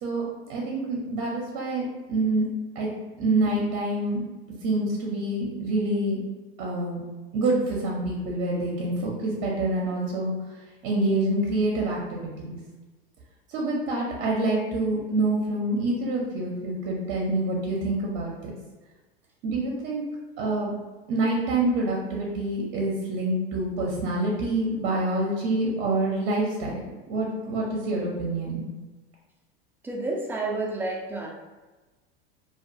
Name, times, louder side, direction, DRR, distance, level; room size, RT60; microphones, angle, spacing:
voice 1, 0.0-2.5 2.7-2.9 3.2-4.2 4.6-6.2 6.6-7.0 7.3-10.3 10.8-12.6 13.5-18.5 19.4-20.0 20.4-20.8 21.1-28.6, right 2 dB, 50° right, -2 dB, 0.6 m, -27 dB
voice 2, 29.8-31.3, right 2 dB, 5° right, -2 dB, 0.3 m, -30 dB
2.3 x 2.2 x 2.6 m, 1.2 s
supercardioid pair, 105°, 29 cm